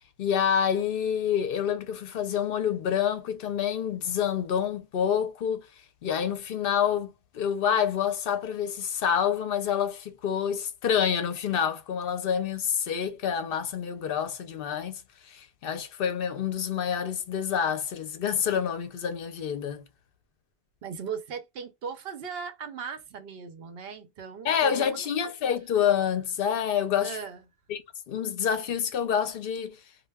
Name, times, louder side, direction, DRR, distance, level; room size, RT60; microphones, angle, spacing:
voice 1, 0.2-5.7 6.0-15.0 15.3-19.8 24.4-27.2 27.7-27.8 28.1-29.8, left 8 dB, 65° left, 0.7 m, -27 dB
voice 2, 20.8-25.1 27.0-27.4, right 6 dB, 70° right, 0.9 m, -38 dB
2.3 x 2.1 x 3.3 m
omnidirectional pair, 1.0 m